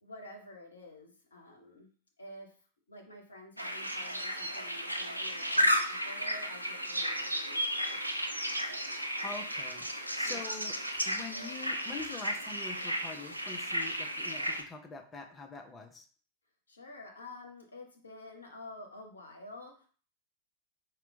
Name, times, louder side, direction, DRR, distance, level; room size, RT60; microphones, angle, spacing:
voice 1, 0.0-1.9 2.2-2.5 2.9-8.0 10.2-10.7 16.7-19.9, left 2 dB, 75° left, 2 dB, 0.7 m, -49 dB
sound 1, 3.6-14.6, equal, 90° right, 0.3 m, -33 dB
voice 2, 8.7-10.7 11.1-16.1, left 4 dB, 20° left, 4 dB, 0.6 m, -45 dB
4.3 x 2.2 x 2.6 m, 0.43 s
figure-of-eight pair, 90°, 0 cm